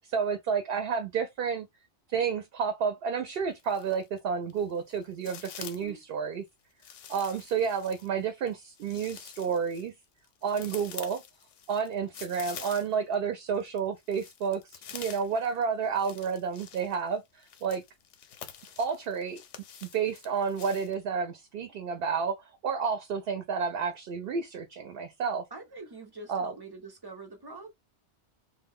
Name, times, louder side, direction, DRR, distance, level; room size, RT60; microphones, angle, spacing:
voice 1, 0.1-1.7 2.1-6.5 7.1-9.9 10.4-11.2 11.7-17.2 17.6-17.8 18.8-19.4 19.8-25.4 26.3-26.5, right 6 dB, 60° right, 0.7 m, -30 dB
sound 1, 3.3-4.2 4.5-6.0 6.8-13.1 13.5-20.9, left 8 dB, 90° left, 0.9 m, -47 dB
voice 2, 5.6-6.0 25.5-27.7, right 3 dB, 40° right, 0.3 m, -44 dB
2.2 x 2.0 x 3.5 m
omnidirectional pair, 1.2 m